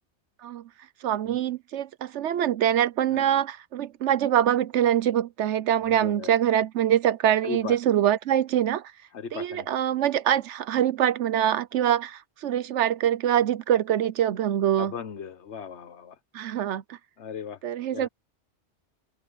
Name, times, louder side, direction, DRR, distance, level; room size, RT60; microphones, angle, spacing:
voice 1, 1.0-8.9 9.3-14.9 16.3-17.0 17.6-18.1, right 10 dB, 80° right, 1.0 m, -24 dB
voice 2, 5.9-6.3 7.4-7.8 9.1-9.7 14.8-16.2 17.2-17.6 17.9-18.1, left 6 dB, 75° left, 1.3 m, -37 dB
open air
omnidirectional pair, 1.2 m